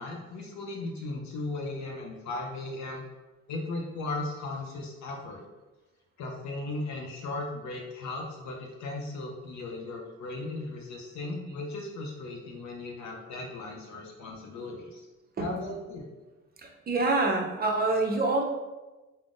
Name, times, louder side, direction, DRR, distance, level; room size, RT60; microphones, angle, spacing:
voice 1, 0.0-3.0 3.5-5.4 6.2-15.0 15.4-16.0, left 2 dB, 65° left, 0 dB, 0.5 m, -37 dB
voice 2, 16.6-18.4, right 2 dB, 30° right, 1 dB, 0.5 m, -26 dB
3.5 x 2.0 x 2.4 m, 1.1 s
cardioid pair, 90°, 30 cm